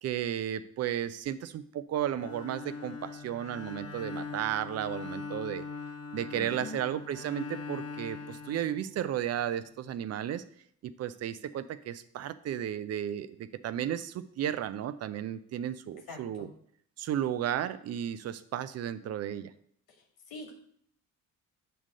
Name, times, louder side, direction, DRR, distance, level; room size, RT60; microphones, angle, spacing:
voice 1, 0.0-5.6 6.1-10.4 11.0-16.5 17.0-19.5, right 10 dB, 35° right, 14 dB, 0.6 m, -34 dB
Bowed string instrument, 2.1-9.3, left 4 dB, 35° left, 1.0 m, -42 dB
voice 2, 6.3-6.8 16.1-16.5 20.3-20.5, left 3 dB, 55° left, 3 dB, 1.9 m, -43 dB
7.9 x 3.7 x 6.5 m, 0.65 s
figure-of-eight pair, 45°, 44 cm